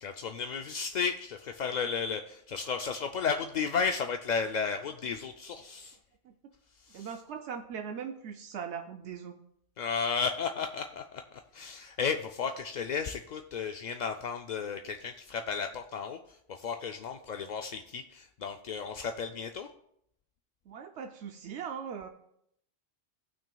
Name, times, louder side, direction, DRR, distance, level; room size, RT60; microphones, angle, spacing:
voice 1, 0.0-6.0 6.9-7.1 9.8-16.2 16.5-19.7, left 6 dB, 55° left, 5 dB, 0.5 m, -33 dB
voice 2, 6.9-9.4 20.7-22.1, right 7 dB, 80° right, 5 dB, 0.9 m, -40 dB
17.5 x 6.0 x 2.3 m, 0.74 s
omnidirectional pair, 1.1 m